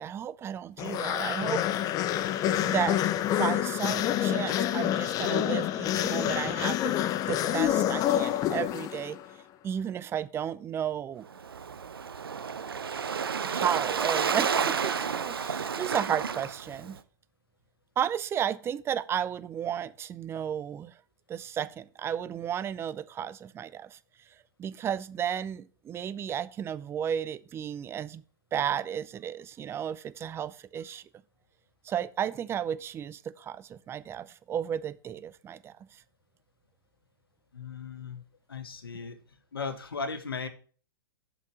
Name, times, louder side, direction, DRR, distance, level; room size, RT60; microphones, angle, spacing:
voice 1, 0.0-1.6 2.7-3.0 3.4-7.0 7.3-9.2 9.6-11.3 13.4-17.0 18.0-20.9 21.3-24.0 24.6-28.2 28.5-31.0 31.8-35.7, right 9 dB, 20° right, 0.6 m, -33 dB
sound 1, 0.8-9.2, left 12 dB, 30° left, 0.6 m, -27 dB
Waves surf, 11.3-17.0, right 6 dB, 90° right, 0.7 m, -31 dB
voice 2, 37.5-38.2 38.5-39.2 39.5-40.5, left 4 dB, 90° left, 1.4 m, -36 dB
7.2 x 6.1 x 6.3 m
hypercardioid pair, 115°, 12 cm